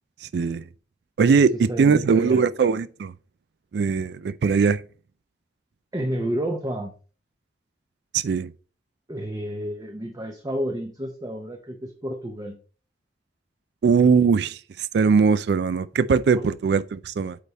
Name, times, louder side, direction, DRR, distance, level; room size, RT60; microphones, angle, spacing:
voice 1, 0.3-0.6 1.2-3.1 3.7-4.8 8.1-8.5 13.8-14.6 14.9-17.4, right 5 dB, 65° right, 0.3 m, -20 dB
voice 2, 1.3-2.5 5.9-6.9 9.1-12.6 14.0-14.1 16.3-16.5, right 1 dB, 20° right, 0.6 m, -30 dB
8.6 x 3.4 x 4.1 m
head